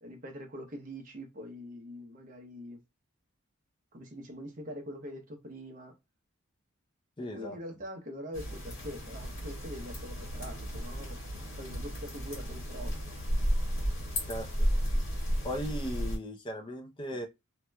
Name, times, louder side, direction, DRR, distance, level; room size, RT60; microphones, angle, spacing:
voice 1, 0.0-2.8 3.9-6.0 7.3-11.2 11.6-13.0, equal, 40° right, 0.8 m, -43 dB
voice 2, 7.2-7.6 14.3-14.7 15.4-17.3, equal, 25° left, 0.6 m, -37 dB
sound 1, 8.3-16.2, equal, 60° left, 1.9 m, -33 dB
3.0 x 2.8 x 2.3 m
head